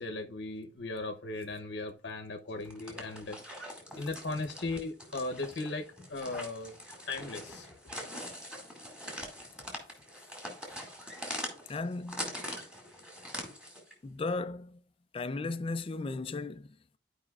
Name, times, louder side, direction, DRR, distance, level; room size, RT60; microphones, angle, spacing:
voice 1, 0.0-3.4 4.0-6.8 7.1-7.7 8.1-8.2, left 2 dB, 60° left, 0.8 m, -37 dB
sound 1, 2.6-13.9, equal, 5° right, 2.0 m, -43 dB
voice 2, 11.7-12.5 14.0-14.8 15.1-17.0, left 3 dB, 30° left, 0.3 m, -36 dB
12.0 x 5.0 x 2.4 m
head